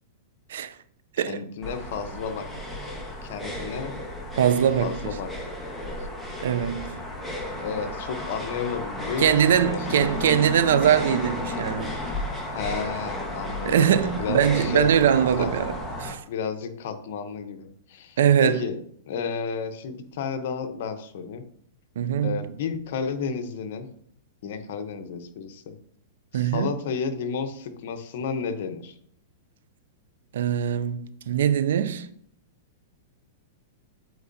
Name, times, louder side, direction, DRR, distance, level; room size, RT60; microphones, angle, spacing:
voice 1, 1.3-2.5 3.2-4.0 4.8-5.3 7.6-10.3 12.5-13.9 14.1-14.9 15.4-15.5 16.2-18.8 19.1-21.4 22.2-23.9 24.4-25.8 26.3-29.0, left 6 dB, 60° left, 0.9 m, -32 dB
sound 1, 1.6-16.1, left 1 dB, ahead, 1.3 m, -33 dB
voice 2, 4.3-5.2 6.4-7.0 9.2-11.9 13.6-16.2 18.2-18.7 22.0-22.4 26.3-26.7 30.3-32.1, right 9 dB, 75° right, 0.4 m, -22 dB
8.0 x 4.6 x 2.7 m
hypercardioid pair, 135°, 0 cm